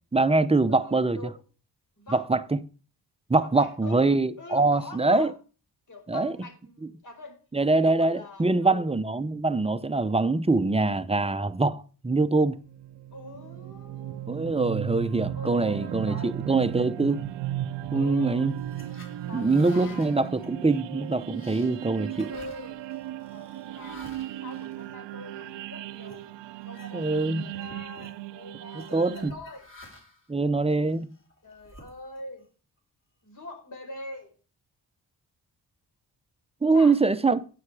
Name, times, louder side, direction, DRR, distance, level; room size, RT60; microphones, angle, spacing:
voice 1, 0.1-1.3 2.1-2.6 3.3-5.3 6.1-6.4 7.5-12.6 14.3-17.2 17.9-18.5 19.3-22.3 26.9-27.4 28.9-29.3 30.3-31.1 36.6-37.5, right 3 dB, 15° right, 0.6 m, -24 dB
voice 2, 0.7-1.4 2.0-2.2 3.3-5.3 5.9-7.4 7.8-8.8 13.1-14.7 15.3-16.3 17.9-18.5 19.2-20.1 22.3-22.8 23.3-24.1 24.4-26.2 26.6-29.6 31.4-32.4 33.2-34.3 36.7-37.1, left 2 dB, 45° left, 4.4 m, -43 dB
sound 1, 12.6-29.3, right 13 dB, 90° right, 0.6 m, -36 dB
sound 2, 18.5-25.5 26.0-26.2 26.6-27.3 27.5-28.2 28.8-30.3 30.9-32.4, left 1 dB, 30° left, 3.4 m, -52 dB
9.6 x 8.7 x 4.8 m
cardioid pair, 75°, 42 cm